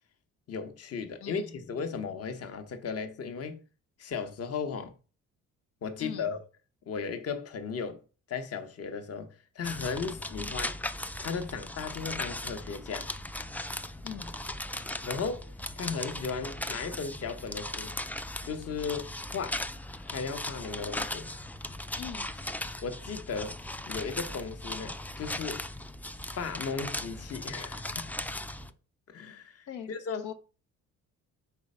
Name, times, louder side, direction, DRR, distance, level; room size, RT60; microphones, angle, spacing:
voice 1, 0.5-3.6 4.0-4.9 5.8-6.4 6.9-8.0 8.3-10.7 11.2-13.1 15.0-17.9 18.4-19.6 20.1-21.3 22.8-23.6 23.9-25.6 26.3-28.1 29.1-30.3, left 5 dB, 50° left, 1.0 m, -36 dB
voice 2, 1.2-1.6 6.0-6.3 10.4-10.5 14.0-14.3 22.0-22.5 29.7-29.9 30.2-30.3, left 9 dB, 90° left, 1.0 m, -41 dB
sound 1, 9.6-28.7, left 1 dB, 5° left, 0.4 m, -38 dB
4.6 x 4.1 x 5.4 m
cardioid pair, 90°, 30 cm